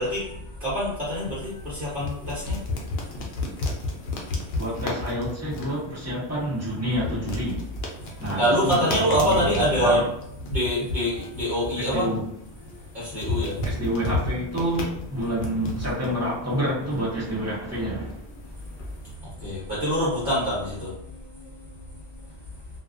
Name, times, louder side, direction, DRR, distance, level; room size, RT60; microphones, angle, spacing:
voice 1, 0.0-3.2 3.9-4.0 8.0-10.0 10.5-12.1 12.6-13.7 18.4-18.5 18.9-22.3, equal, 55° right, -8 dB, 1.0 m, -26 dB
sound 1, 0.9-19.1, left 2 dB, 70° left, 0.8 m, -34 dB
voice 2, 4.5-7.6 8.2-9.5 9.8-10.0 11.9-12.2 13.6-18.1, equal, 15° right, -7 dB, 0.7 m, -28 dB
2.3 x 2.2 x 2.4 m, 0.78 s
omnidirectional pair, 1.1 m